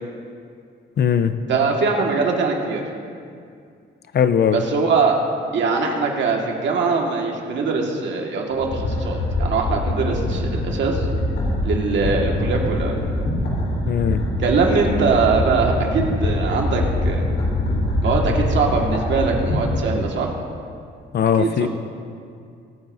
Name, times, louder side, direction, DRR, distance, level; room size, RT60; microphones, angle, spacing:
voice 1, 1.0-1.4 4.1-4.6 13.9-14.2 21.1-21.7, left 8 dB, 55° left, 11 dB, 0.7 m, -19 dB
voice 2, 1.5-2.8 4.5-5.2 5.5-11.1 11.6-13.0 14.4-17.3 18.0-20.3 21.4-21.7, right 4 dB, 70° right, 0 dB, 1.9 m, -22 dB
sound 1, 8.5-20.1, left 1 dB, 80° left, 2.9 m, -23 dB
22.0 x 9.2 x 2.7 m, 2.3 s
cardioid pair, 90°, 20 cm